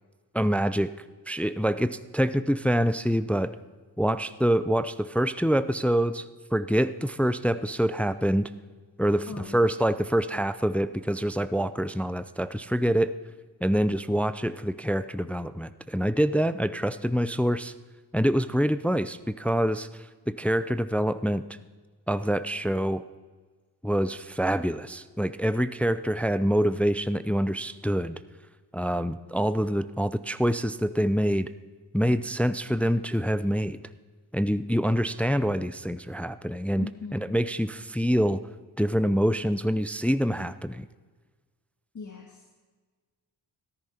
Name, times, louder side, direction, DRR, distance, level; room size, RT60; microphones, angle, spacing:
voice 1, 0.3-0.9 1.3-3.6 4.0-8.5 9.0-9.3 9.5-13.1 13.6-17.7 18.1-21.4 22.1-23.0 23.8-28.2 28.7-31.5 31.9-33.8 34.3-38.4 38.8-40.9, equal, 5° left, 13 dB, 0.5 m, -26 dB
voice 2, 9.3-9.7 36.8-37.4 41.9-42.4, left 4 dB, 45° left, 2 dB, 1.7 m, -40 dB
14.5 x 13.5 x 4.4 m, 1.4 s
cardioid pair, 65°, 42 cm